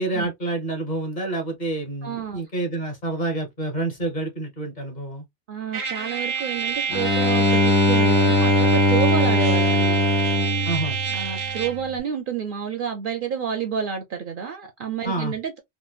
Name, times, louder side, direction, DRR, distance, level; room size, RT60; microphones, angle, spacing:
voice 1, 0.0-5.3 10.6-11.0 15.0-15.3, right 2 dB, 40° left, 1.2 m, -28 dB
voice 2, 2.0-2.5 5.5-10.1 11.1-15.6, right 7 dB, 60° right, 0.6 m, -29 dB
Trumpet, 5.7-11.9, right 6 dB, 85° right, 1.1 m, -28 dB
Bowed string instrument, 6.9-11.8, left 1 dB, 75° left, 1.1 m, -20 dB
3.7 x 2.1 x 2.3 m
omnidirectional pair, 1.1 m